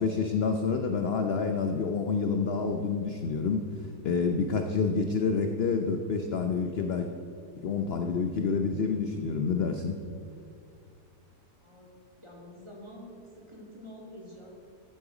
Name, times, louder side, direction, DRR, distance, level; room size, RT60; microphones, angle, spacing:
voice 1, 0.0-3.7 4.0-7.1 7.6-10.0, left 5 dB, 55° left, 5 dB, 0.7 m, -28 dB
voice 2, 11.5-11.9 12.2-13.1 13.4-14.6, left 1 dB, 20° right, -2 dB, 2.1 m, -47 dB
13.5 x 8.6 x 5.0 m, 2.3 s
omnidirectional pair, 1.7 m